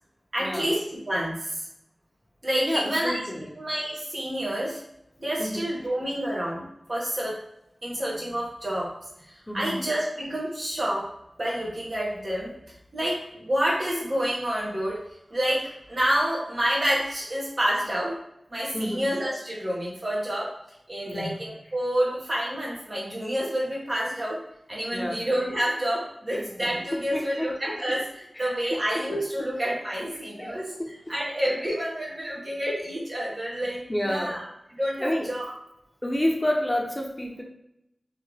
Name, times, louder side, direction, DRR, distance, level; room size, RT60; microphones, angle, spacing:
voice 1, 0.3-1.6 2.4-3.2 3.6-4.8 5.2-7.3 7.8-8.9 9.5-11.1 11.4-12.5 12.9-15.0 15.3-18.2 18.5-20.5 20.9-24.4 24.7-34.5 34.8-35.5, equal, 45° right, -4 dB, 1.6 m, -28 dB
voice 2, 2.6-3.5 5.4-5.7 9.5-9.8 18.7-19.1 21.1-21.3 24.9-25.2 26.3-26.4 27.1-27.5 28.4-28.5 30.4-30.9 33.9-34.3 35.0-35.3 36.0-37.4, left 1 dB, 20° left, 1 dB, 0.8 m, -29 dB
3.7 x 3.5 x 3.3 m, 0.81 s
wide cardioid pair, 70°, 0 cm